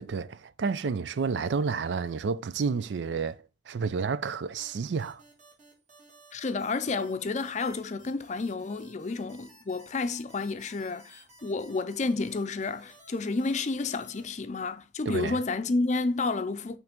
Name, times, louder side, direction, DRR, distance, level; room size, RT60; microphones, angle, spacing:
voice 1, 0.0-5.2 15.1-15.4, right 5 dB, 80° right, 0.4 m, -30 dB
sound 1, 4.6-14.2, right 1 dB, 40° right, 2.1 m, -55 dB
voice 2, 6.3-16.8, left 3 dB, 40° left, 0.5 m, -30 dB
5.9 x 3.3 x 5.1 m
head